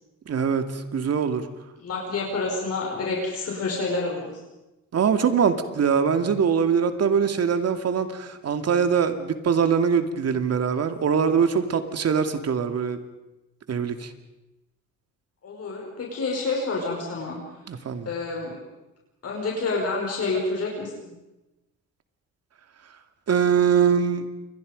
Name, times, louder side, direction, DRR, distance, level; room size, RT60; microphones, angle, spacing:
voice 1, 0.3-1.5 4.9-13.0 13.7-14.1 17.7-18.1 23.3-24.3, right 6 dB, 55° right, 8 dB, 2.5 m, -23 dB
voice 2, 1.8-4.4 15.4-17.4 18.0-18.6 19.2-21.1, left 3 dB, 55° left, -1 dB, 5.7 m, -28 dB
28.5 x 23.0 x 5.4 m, 1.0 s
cardioid pair, 90°, 30 cm